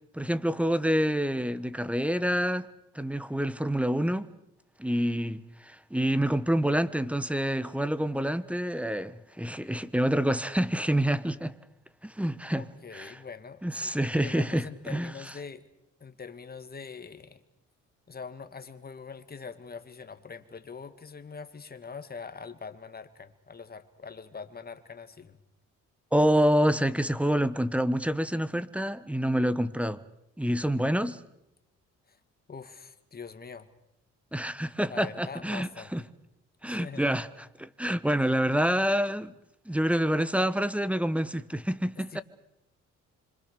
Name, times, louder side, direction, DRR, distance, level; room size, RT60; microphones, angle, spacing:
voice 1, 0.1-2.7 2.9-4.3 4.8-11.5 12.0-12.7 12.9-13.2 13.6-15.1 26.1-30.0 30.4-31.2 34.3-36.0 36.6-37.3 37.6-39.3 39.7-42.2, equal, 5° right, 1.2 m, -27 dB
voice 2, 12.5-15.6 16.0-17.4 18.1-25.4 32.1-32.2 32.5-33.7 34.9-36.1 36.6-37.2 42.0-42.2, left 5 dB, 30° left, 2.1 m, -43 dB
26.0 x 24.5 x 6.8 m
cardioid pair, 90°, 30 cm